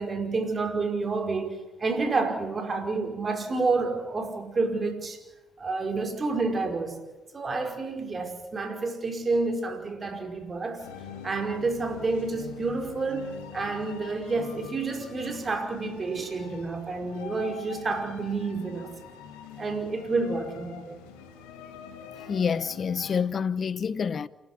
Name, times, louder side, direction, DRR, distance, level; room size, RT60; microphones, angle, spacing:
voice 1, 0.0-1.5 1.8-5.2 5.6-7.0 7.3-10.8 11.2-18.9 19.6-21.0, right 3 dB, 35° right, 5.2 m, -29 dB
sound 1, 10.8-23.2, left 7 dB, 85° left, 3.8 m, -44 dB
voice 2, 22.3-24.3, left 6 dB, 50° left, 0.9 m, -27 dB
28.5 x 13.5 x 9.6 m
hypercardioid pair, 55°, 0 cm